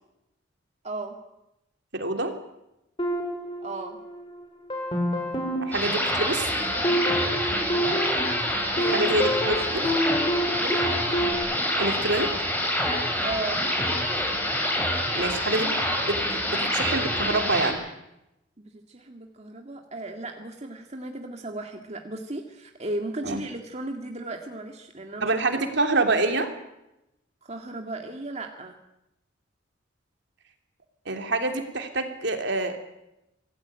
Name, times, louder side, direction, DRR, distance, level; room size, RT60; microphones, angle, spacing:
voice 1, 0.8-1.2 3.6-4.0 7.7-8.0 8.7-9.2 9.5-10.1 10.6-10.8 13.2-13.6 15.2-15.8 18.6-25.3 27.4-28.8, right 2 dB, 35° right, 3 dB, 2.1 m, -36 dB
voice 2, 1.9-2.3 5.6-6.5 8.9-9.8 11.8-12.3 15.1-15.8 16.1-17.8 23.2-23.4 25.2-26.5 31.0-32.8, right 2 dB, 60° right, 5 dB, 3.2 m, -26 dB
sound 1, 3.0-4.2 4.7-11.3, equal, 25° left, 4.7 m, -28 dB
sound 2, 5.7-17.7, left 1 dB, 10° left, 6.3 m, -26 dB
26.0 x 18.0 x 8.9 m, 0.90 s
head